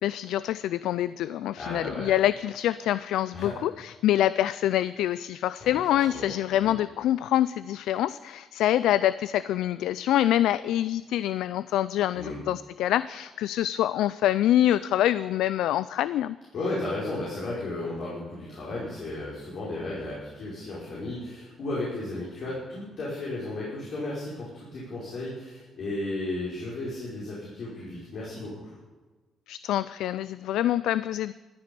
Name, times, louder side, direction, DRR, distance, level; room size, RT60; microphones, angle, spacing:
voice 1, 0.0-16.4 29.5-31.3, left 12 dB, 85° left, 16 dB, 0.3 m, -25 dB
voice 2, 1.6-2.1 3.3-3.5 5.6-5.8 6.1-6.3 6.6-6.7 12.2-12.4 16.5-28.7, left 2 dB, 65° left, -7 dB, 5.1 m, -34 dB
14.0 x 10.5 x 6.8 m, 1.3 s
cardioid pair, 90°, 0 cm